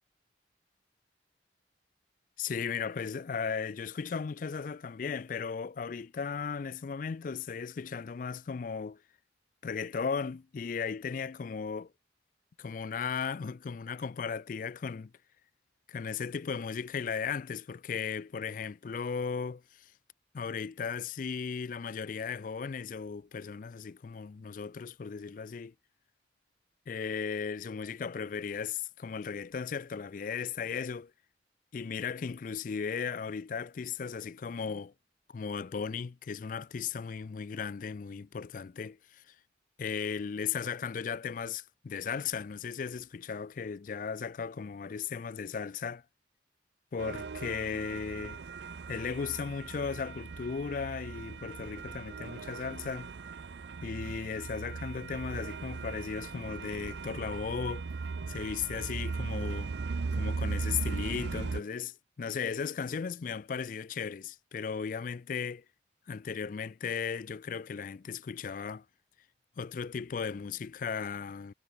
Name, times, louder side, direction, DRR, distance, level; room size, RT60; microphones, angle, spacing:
voice 1, 2.4-9.0 9.6-11.9 12.6-15.1 15.9-19.9 20.3-25.7 26.9-31.1 31.7-34.9 35.3-39.3 39.8-46.0 46.9-48.4 48.9-53.1 53.8-57.8 58.3-59.7 60.1-65.6 66.1-68.8 69.6-71.5, left 6 dB, 45° left, 0.4 m, -36 dB
sound 1, 47.0-61.6, right 4 dB, 70° right, 0.5 m, -38 dB
head